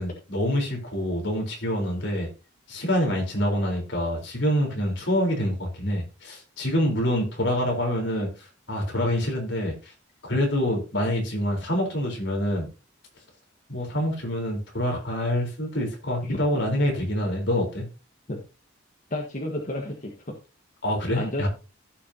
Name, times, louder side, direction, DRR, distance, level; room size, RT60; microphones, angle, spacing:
voice 1, 0.0-2.3 2.7-9.9 10.3-12.7 13.7-17.8 20.8-21.5, equal, 60° left, 0 dB, 4.1 m, -26 dB
voice 2, 16.2-16.6 18.3-18.4 19.1-20.4 21.1-21.5, left 1 dB, 40° left, 1 dB, 1.4 m, -32 dB
15.5 x 6.3 x 2.9 m, 0.31 s
head